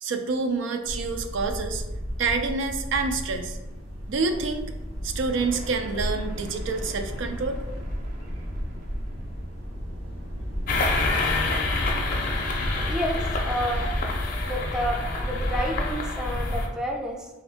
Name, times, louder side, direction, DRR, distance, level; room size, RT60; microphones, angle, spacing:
voice 1, 0.0-1.8 2.2-3.6 4.1-4.7 5.0-7.6, right 4 dB, 75° right, 7 dB, 0.4 m, -27 dB
sound 1, 0.9-16.0, equal, 90° right, 0.9 m, -34 dB
sound 2, 5.3-9.6, equal, 45° right, 0.7 m, -43 dB
sound 3, 10.7-16.7, left 2 dB, 50° left, 0.5 m, -27 dB
voice 2, 12.5-13.9 14.4-17.3, equal, 5° right, 1 dB, 0.4 m, -30 dB
3.4 x 2.6 x 3.4 m, 1.1 s
head